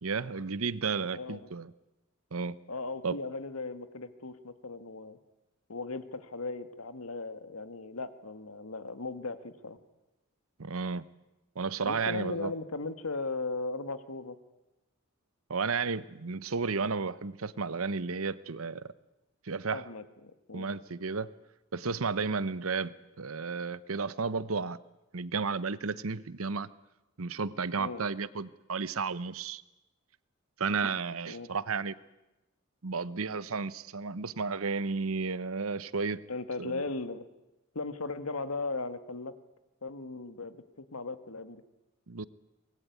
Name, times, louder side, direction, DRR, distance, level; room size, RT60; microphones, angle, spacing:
voice 1, 0.0-1.7 2.3-2.6 3.0-3.2 10.6-11.0 11.6-12.5 15.5-18.9 19.4-19.9 20.5-21.3 21.7-24.8 25.1-26.7 27.2-29.6 30.6-31.9 32.8-36.2 36.6-36.8 42.1-42.2, right 4 dB, 75° right, 17 dB, 0.9 m, -33 dB
voice 2, 1.1-1.5 2.7-5.2 5.7-9.8 11.8-14.4 19.7-20.7 27.8-28.0 31.3-31.5 36.3-37.3 37.7-39.3 39.8-41.6, left 3 dB, 85° left, 11 dB, 1.7 m, -37 dB
24.0 x 20.0 x 9.4 m, 1.0 s
head